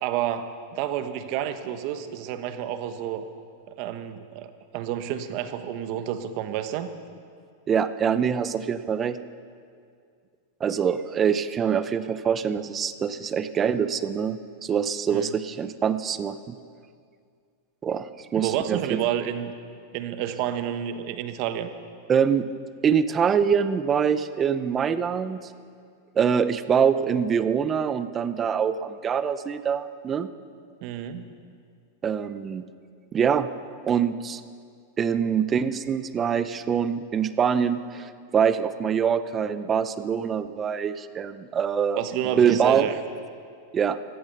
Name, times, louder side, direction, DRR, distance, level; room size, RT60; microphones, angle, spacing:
voice 1, 0.0-3.2 3.7-6.9 15.1-15.3 18.4-19.5 19.9-21.7 30.8-31.2 42.0-42.9, right 10 dB, 50° right, 9 dB, 1.2 m, -30 dB
voice 2, 7.7-9.2 10.6-16.6 17.8-19.0 22.1-22.5 22.8-25.4 26.2-30.3 32.0-32.6 33.1-33.5 33.8-34.4 35.0-42.0 42.4-42.9 43.7-44.0, right 7 dB, 20° right, 13 dB, 0.7 m, -24 dB
17.0 x 12.5 x 6.8 m, 2.2 s
supercardioid pair, 140°, 0 cm